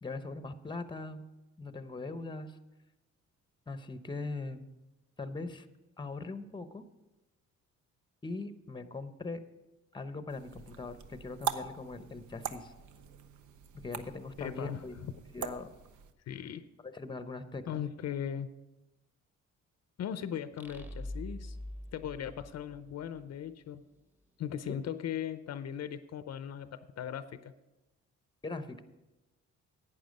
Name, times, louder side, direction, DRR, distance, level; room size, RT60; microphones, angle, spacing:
voice 1, 0.0-1.3 1.6-2.6 3.7-4.7 5.2-5.7 6.0-6.8 8.2-9.4 9.9-12.7 13.8-14.9 15.3-15.7 16.8-17.8 24.7-24.8 28.4-28.8, left 3 dB, 15° left, 11 dB, 0.7 m, -40 dB
sound 1, 10.3-16.1, right 8 dB, 75° right, 0.8 m, -42 dB
voice 2, 14.4-15.1 16.3-16.6 17.7-18.5 20.0-21.6 21.9-23.8 24.4-27.5, left 9 dB, 60° left, 12 dB, 0.6 m, -38 dB
sound 2, 20.6-23.2, left 1 dB, 5° right, 1.0 m, -43 dB
11.5 x 8.7 x 5.3 m, 1.0 s
cardioid pair, 90°, 30 cm